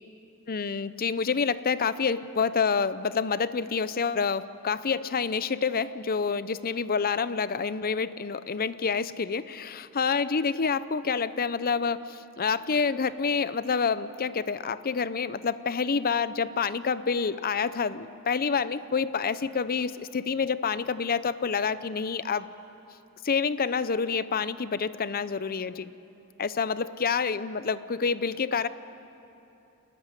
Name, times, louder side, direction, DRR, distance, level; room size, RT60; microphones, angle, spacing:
voice 1, 0.5-22.5 23.2-25.9 26.4-28.7, left 5 dB, 40° left, 15 dB, 0.6 m, -28 dB
28.5 x 12.5 x 9.8 m, 2.9 s
head